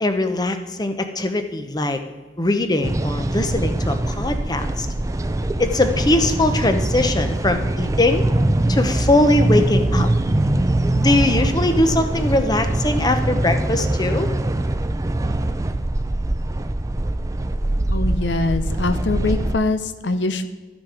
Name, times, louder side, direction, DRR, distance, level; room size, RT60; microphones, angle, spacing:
voice 1, 0.0-2.0 2.4-4.9 5.6-8.2 8.7-10.1 10.9-14.3, left 2 dB, 25° left, 7 dB, 0.7 m, -21 dB
sound 1, 2.8-19.6, right 1 dB, 20° right, 0.4 m, -22 dB
voice 2, 17.9-20.5, left 2 dB, 80° left, 11 dB, 0.7 m, -23 dB
13.0 x 6.1 x 4.9 m, 1.4 s
head